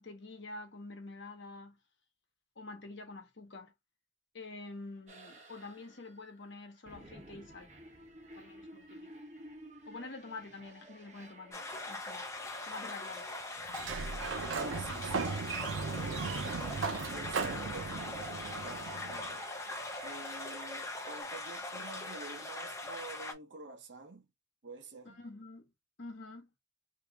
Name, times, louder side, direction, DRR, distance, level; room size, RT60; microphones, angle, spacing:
voice 1, 0.0-1.8 2.6-3.7 4.3-7.7 8.3-9.1 9.8-12.3 12.6-13.3 16.5-17.3 25.0-25.7 26.0-26.5, left 3 dB, 65° left, 1.0 m, -47 dB
sound 1, 5.1-21.2, right 2 dB, 40° right, 1.0 m, -53 dB
sound 2, 11.5-23.3, left 2 dB, 15° left, 0.6 m, -41 dB
Sliding door, 13.7-19.3, right 4 dB, 90° right, 0.6 m, -37 dB
voice 2, 14.6-15.5 16.0-24.3 24.6-25.2, right 3 dB, 70° right, 0.9 m, -49 dB
3.0 x 2.8 x 3.4 m
head